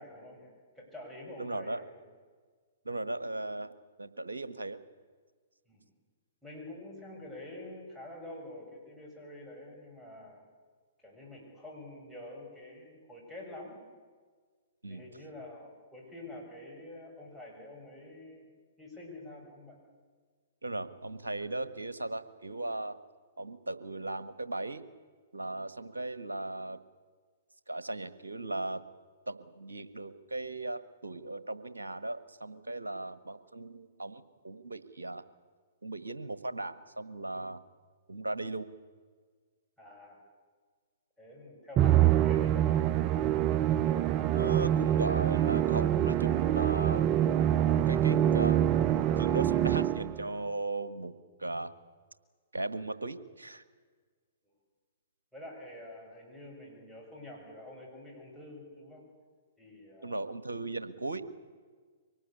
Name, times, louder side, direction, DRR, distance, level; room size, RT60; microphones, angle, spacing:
voice 1, 0.0-2.0 2.9-3.0 5.7-5.8 6.4-10.5 11.0-13.8 14.9-18.5 18.8-19.8 39.8-40.2 41.2-43.0 55.3-59.0 59.6-60.2, left 1 dB, 5° right, -2 dB, 7.9 m, -47 dB
voice 2, 1.4-1.8 2.8-3.7 4.0-4.8 14.8-15.1 20.6-23.0 23.4-24.8 25.3-26.8 27.7-28.8 29.3-35.2 35.8-37.6 38.1-38.7 44.3-47.1 47.6-48.6 48.9-51.7 52.5-53.6 60.0-61.3, right 2 dB, 80° right, 13 dB, 1.5 m, -37 dB
Musical instrument, 41.8-50.2, right 11 dB, 30° right, 0.6 m, -25 dB
24.0 x 19.0 x 8.4 m, 1.5 s
figure-of-eight pair, 115°, 0 cm